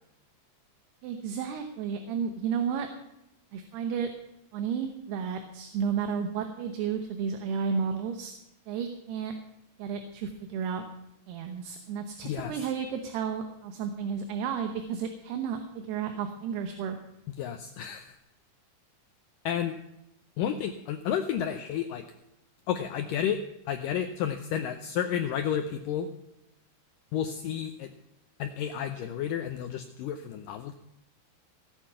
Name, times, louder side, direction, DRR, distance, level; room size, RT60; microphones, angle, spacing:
voice 1, 1.0-2.9 3.5-4.1 4.5-8.3 8.7-9.3 9.8-10.8 11.3-17.0, right 7 dB, 80° right, 6 dB, 3.0 m, -32 dB
voice 2, 17.4-18.2 19.5-19.8 20.4-22.1 22.7-26.1 27.1-27.9 28.4-30.7, left 9 dB, 90° left, 7 dB, 1.9 m, -31 dB
17.5 x 8.8 x 5.6 m, 0.88 s
omnidirectional pair, 4.8 m